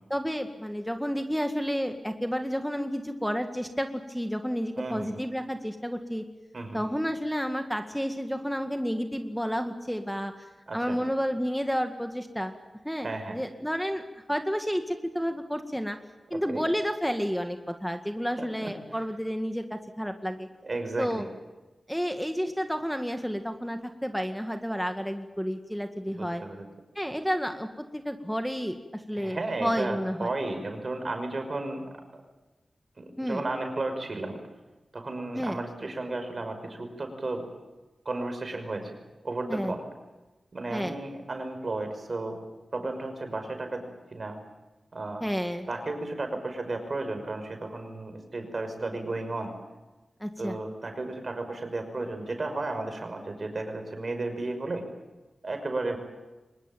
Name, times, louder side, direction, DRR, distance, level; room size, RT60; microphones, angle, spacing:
voice 1, 0.1-6.2 6.7-10.3 10.7-12.6 12.8-16.0 16.3-20.5 21.0-21.3 21.9-26.4 27.0-30.3 33.2-33.4 35.4-35.6 39.5-39.8 40.7-41.0 45.2-45.7 50.2-50.6, equal, ahead, 6 dB, 1.9 m, -31 dB
voice 2, 4.8-5.2 6.5-6.8 10.7-11.0 13.0-13.4 16.3-16.6 18.4-18.7 20.6-21.3 26.2-26.6 29.1-31.9 33.0-34.4 34.9-37.4 38.1-38.9 39.2-39.8 40.5-42.4 42.7-44.4 44.9-45.2 45.7-49.5 50.4-54.8 55.4-56.0, right 2 dB, 55° right, 6 dB, 5.8 m, -33 dB
23.5 x 20.0 x 9.1 m, 1.1 s
cardioid pair, 45°, 0 cm